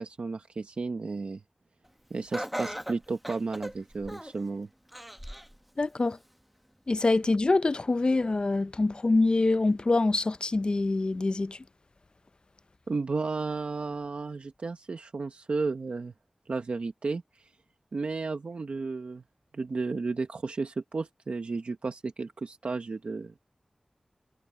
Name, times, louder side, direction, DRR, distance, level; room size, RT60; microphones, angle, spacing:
voice 1, 0.0-1.4 2.1-4.7 12.9-16.1 16.5-17.5 17.9-19.2 19.5-23.3, right 4 dB, 85° right, 1.1 m, -33 dB
Laughter, 2.3-4.4 4.9-5.5 6.0-6.1 7.1-7.2, equal, 5° right, 1.1 m, -38 dB
voice 2, 5.8-6.2 6.9-11.6, left 3 dB, 50° left, 0.5 m, -25 dB
wide cardioid pair, 65°, 2 cm